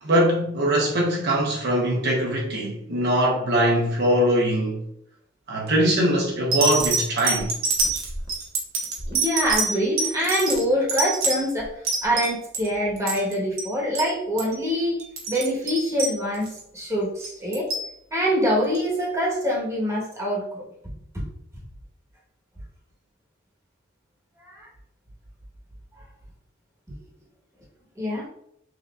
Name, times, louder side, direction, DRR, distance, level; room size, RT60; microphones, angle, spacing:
voice 1, 0.0-4.8 5.5-7.5, equal, 55° right, 0.8 m, -22 dB
sound 1, 5.7-5.9 6.5-12.7 13.0-13.3 13.6-13.7 13.9-14.1 14.4-14.6 15.0-16.6 17.2-17.9 18.7-18.8, right 4 dB, 85° right, 1.1 m, -26 dB
voice 2, 9.1-11.7 12.0-15.0 15.3-17.7 18.1-20.7 24.5-24.7 28.0-28.3, equal, 15° right, 1.2 m, -25 dB
5.9 x 2.8 x 2.4 m
head